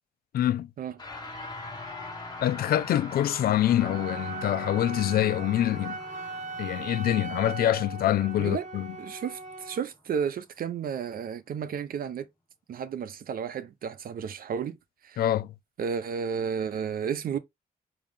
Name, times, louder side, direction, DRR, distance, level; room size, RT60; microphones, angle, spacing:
voice 1, 0.3-0.7 2.4-6.0 6.6-8.9 15.2-15.5, left 12 dB, 90° left, 0.4 m, -25 dB
electronic riser mono, 1.0-10.5, left 2 dB, 25° left, 1.5 m, -43 dB
Wind instrument woodwind instrument, 3.8-9.9, right 3 dB, 55° right, 1.6 m, -39 dB
voice 2, 9.0-12.3 12.7-14.8 15.0-15.2 15.8-17.4, right 7 dB, 75° right, 0.7 m, -32 dB
4.9 x 2.9 x 3.6 m
cardioid pair, 95°, 15 cm